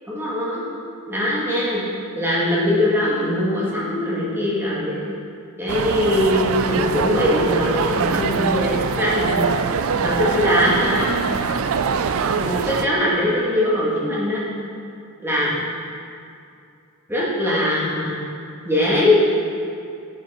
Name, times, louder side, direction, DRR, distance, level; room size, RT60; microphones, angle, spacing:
voice 1, 0.1-0.7 1.1-1.8 2.2-5.0 5.6-9.4 10.0-11.1 12.4-14.4 15.2-15.6 17.1-18.2 18.6-19.2, left 1 dB, 10° right, -7 dB, 1.9 m, -21 dB
sound 1, 5.7-12.9, right 5 dB, 65° right, 0.4 m, -23 dB
9.0 x 5.7 x 5.1 m, 2.5 s
head